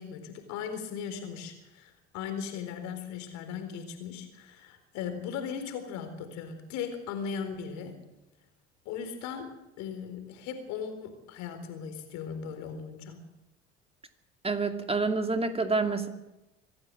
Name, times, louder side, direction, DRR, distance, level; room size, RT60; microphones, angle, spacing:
voice 1, 0.0-8.0 8.9-9.5 9.8-13.2, left 7 dB, 60° left, 7 dB, 4.2 m, -38 dB
voice 2, 14.4-16.1, right 3 dB, 20° right, 6 dB, 2.4 m, -28 dB
25.0 x 15.0 x 7.7 m, 0.97 s
figure-of-eight pair, 60°, 31 cm